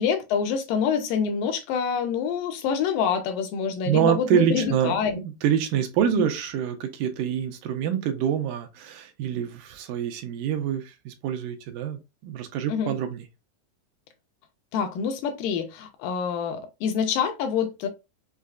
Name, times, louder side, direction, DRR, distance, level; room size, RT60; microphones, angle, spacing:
voice 1, 0.0-5.2 6.1-6.2 12.7-12.9 14.7-17.9, left 7 dB, 80° left, 2.4 m, -26 dB
voice 2, 3.9-13.2, right 9 dB, 80° right, 2.2 m, -26 dB
6.4 x 2.4 x 2.4 m
omnidirectional pair, 3.9 m